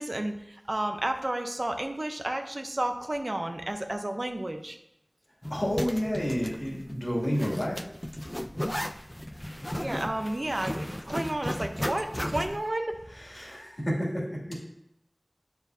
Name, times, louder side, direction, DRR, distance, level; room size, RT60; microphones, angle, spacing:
voice 1, 0.0-4.8 9.7-13.0, right 1 dB, 55° right, 5 dB, 0.6 m, -32 dB
Zipper (clothing), 5.4-12.7, equal, 15° left, 0.3 m, -35 dB
voice 2, 5.5-7.8 13.1-14.5, equal, 55° left, -4 dB, 2.3 m, -30 dB
8.3 x 5.6 x 2.7 m, 0.80 s
wide cardioid pair, 45°, 0 cm